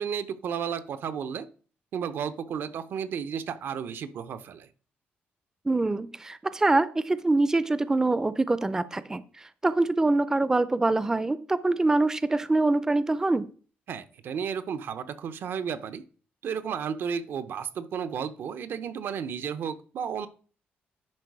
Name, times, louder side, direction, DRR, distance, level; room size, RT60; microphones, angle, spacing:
voice 1, 0.0-1.5 1.9-4.7 13.9-16.0 16.4-20.3, right 7 dB, 70° right, 12 dB, 0.7 m, -33 dB
voice 2, 5.6-13.5, right 2 dB, 15° right, 15 dB, 0.5 m, -24 dB
10.5 x 4.7 x 4.8 m, 0.41 s
cardioid pair, 110°, 4 cm